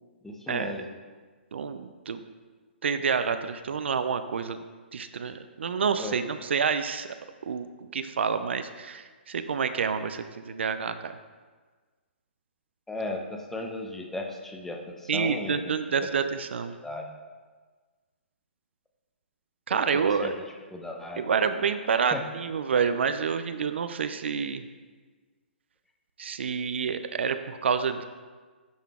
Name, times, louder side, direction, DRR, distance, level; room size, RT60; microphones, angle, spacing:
voice 1, 0.2-0.9 6.0-6.2 12.9-16.1 16.8-17.1 19.7-20.3 20.7-21.4 22.1-22.2, left 2 dB, 5° left, 2 dB, 0.6 m, -36 dB
voice 2, 1.5-2.2 2.8-4.6 4.9-7.1 7.4-11.1 15.1-16.7 19.7-20.3 21.2-24.6 26.2-28.0, right 6 dB, 75° right, 10 dB, 0.4 m, -28 dB
10.0 x 3.7 x 3.6 m, 1.4 s
hypercardioid pair, 140°, 6 cm